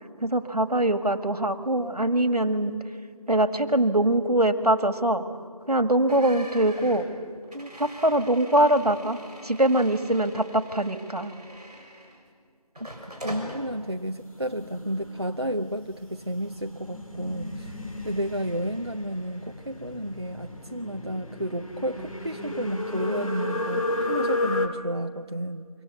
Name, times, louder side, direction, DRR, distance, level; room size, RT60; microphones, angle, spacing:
voice 1, 0.2-2.8 3.3-5.2 5.7-7.1 7.5-11.3, right 1 dB, 75° right, 9 dB, 2.0 m, -23 dB
sound 1, 6.1-12.3 12.7-13.6, equal, 10° right, 4.5 m, -43 dB
voice 2, 13.2-17.8 18.0-25.7, equal, 45° right, 5 dB, 0.6 m, -31 dB
sound 2, 14.2-24.7, left 2 dB, 60° left, 3.1 m, -33 dB
25.0 x 25.0 x 8.3 m, 2.1 s
figure-of-eight pair, 175°, 20 cm